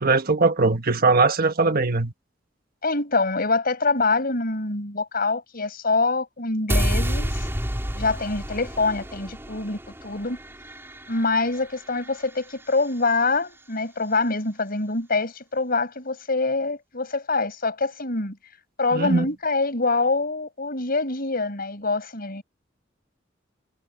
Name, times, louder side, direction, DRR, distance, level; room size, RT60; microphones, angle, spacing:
voice 1, 0.0-2.1 18.9-19.3, right 3 dB, 50° right, 1.4 m, -20 dB
voice 2, 2.8-7.5 8.0-10.4 11.1-18.4 18.8-22.4, left 3 dB, 50° left, 5.5 m, -25 dB
sound 1, 6.7-12.9, equal, 15° right, 3.1 m, -29 dB
head